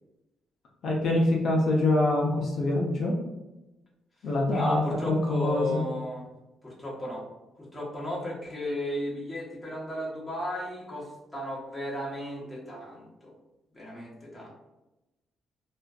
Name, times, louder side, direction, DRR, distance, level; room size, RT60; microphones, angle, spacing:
voice 1, 0.8-3.2 4.2-5.8, left 2 dB, 65° left, -2 dB, 0.5 m, -25 dB
voice 2, 4.5-6.3 6.6-7.2 7.6-13.3 13.7-14.5, left 1 dB, 10° left, -6 dB, 1.0 m, -35 dB
2.5 x 2.2 x 2.3 m, 1.0 s
cardioid pair, 90°, 0 cm